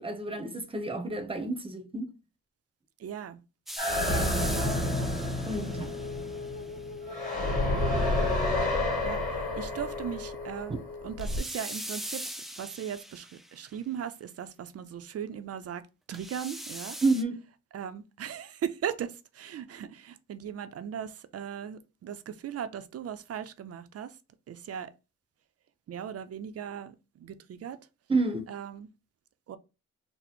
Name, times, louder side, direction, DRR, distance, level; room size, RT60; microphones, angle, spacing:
voice 1, 0.0-2.1 4.1-4.5 5.4-5.9 17.0-17.4 28.1-28.5, right 3 dB, 20° right, 0.8 m, -30 dB
voice 2, 3.0-3.4 4.4-5.1 9.0-12.2 12.6-17.0 17.7-24.2 24.5-24.9 25.9-27.8 28.5-28.9 29.5-29.6, right 9 dB, 55° right, 0.5 m, -38 dB
sound 1, 3.7-6.7 11.2-13.7 16.1-17.2, equal, ahead, 0.3 m, -40 dB
sound 2, 3.8-11.4, left 1 dB, 25° left, 1.8 m, -30 dB
Female singing, 5.5-11.2, left 5 dB, 75° left, 0.5 m, -41 dB
4.1 x 2.1 x 4.3 m
cardioid pair, 110°, 30 cm